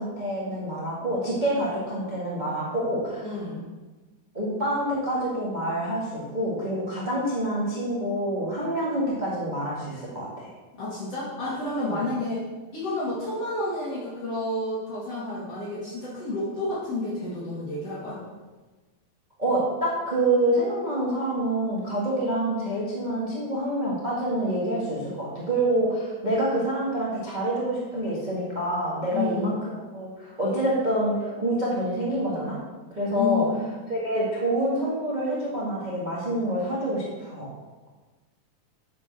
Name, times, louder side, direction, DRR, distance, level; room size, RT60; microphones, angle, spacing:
voice 1, 0.0-3.3 4.3-10.5 11.8-12.0 19.4-32.6 32.9-33.5 33.9-37.5, right 1 dB, 20° right, -6 dB, 1.2 m, -27 dB
voice 2, 3.2-3.6 10.8-12.4 12.7-18.2 29.1-29.6 33.1-33.6, left 2 dB, 50° left, -8 dB, 2.9 m, -30 dB
9.5 x 5.3 x 6.2 m, 1.2 s
omnidirectional pair, 4.0 m